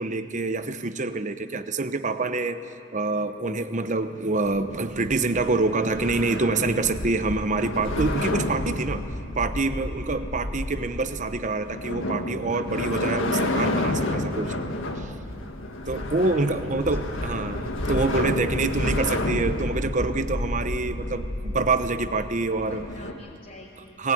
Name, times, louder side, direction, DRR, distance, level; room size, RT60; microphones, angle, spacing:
voice 1, 0.0-2.6 2.9-9.0 9.4-14.5 15.0-15.1 15.9-22.8 24.0-24.1, right 3 dB, 40° right, 10 dB, 0.9 m, -26 dB
sound 1, 4.4-23.1, left 1 dB, 75° left, 1.6 m, -30 dB
voice 2, 15.9-16.5 16.8-17.2 22.5-24.0, left 2 dB, 45° left, -4 dB, 2.5 m, -48 dB
22.0 x 19.0 x 9.4 m, 2.6 s
head